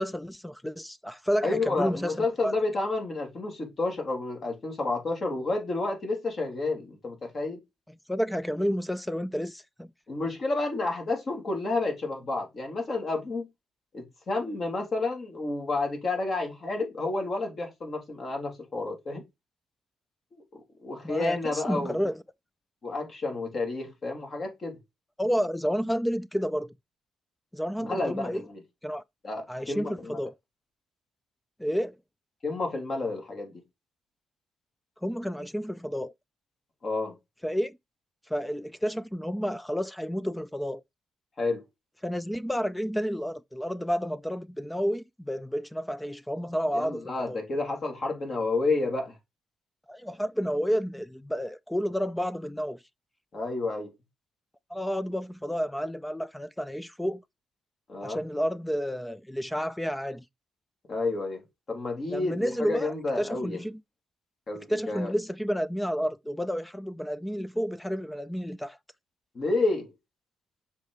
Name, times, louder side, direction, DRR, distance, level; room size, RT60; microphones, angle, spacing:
voice 1, 0.0-2.5 8.1-9.9 21.0-22.2 25.2-26.7 27.5-28.4 28.8-29.0 29.5-30.3 31.6-31.9 35.0-36.1 37.4-37.7 38.3-40.8 42.0-47.4 49.9-52.8 54.7-57.2 58.0-60.2 62.1-63.8 64.7-68.8, equal, 5° left, 0.4 m, -30 dB
voice 2, 1.4-7.6 10.1-13.5 13.9-19.2 20.3-20.4 20.8-22.0 22.8-24.8 27.8-28.6 29.2-30.2 32.4-33.6 36.8-37.1 41.4-41.6 46.7-49.1 53.3-53.9 57.9-58.2 60.9-61.4 61.7-63.6 64.5-65.1 69.3-69.9, left 3 dB, 45° left, 3.4 m, -30 dB
7.0 x 4.5 x 4.8 m
cardioid pair, 90°, 0 cm